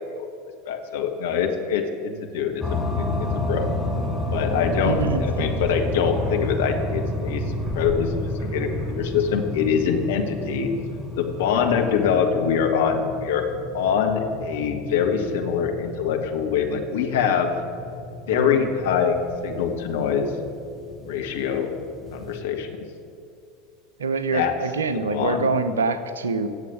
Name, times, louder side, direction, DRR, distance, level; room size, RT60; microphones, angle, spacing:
voice 1, 0.6-3.7 4.3-7.4 7.7-8.1 8.5-10.7 11.2-13.4 13.7-17.5 18.3-19.2 19.4-20.3 21.0-21.7 22.1-22.8 24.3-24.5 25.1-25.4, left 7 dB, 65° left, 4 dB, 1.7 m, -24 dB
sound 1, 2.6-22.4, left 1 dB, ahead, 2.4 m, -31 dB
sound 2, 3.6-9.0, right 2 dB, 20° right, 4.5 m, -38 dB
voice 2, 4.9-5.5 18.3-18.7 24.0-26.5, right 4 dB, 75° right, 12 dB, 0.9 m, -25 dB
16.0 x 7.5 x 8.7 m, 2.5 s
figure-of-eight pair, 80°, 0 cm